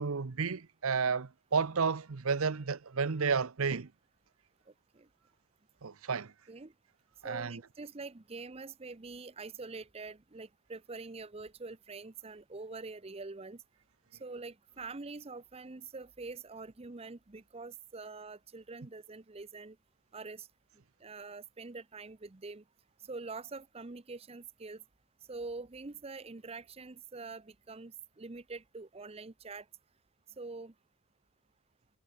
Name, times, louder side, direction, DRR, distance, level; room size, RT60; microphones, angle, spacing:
voice 1, 0.0-3.9 5.8-6.3 7.2-7.6, right 5 dB, 75° right, 0.8 m, -31 dB
voice 2, 7.2-13.6 14.2-19.8 20.1-20.5 21.0-22.6 23.0-24.8 25.3-29.7 30.4-30.7, right 3 dB, 25° right, 0.7 m, -45 dB
head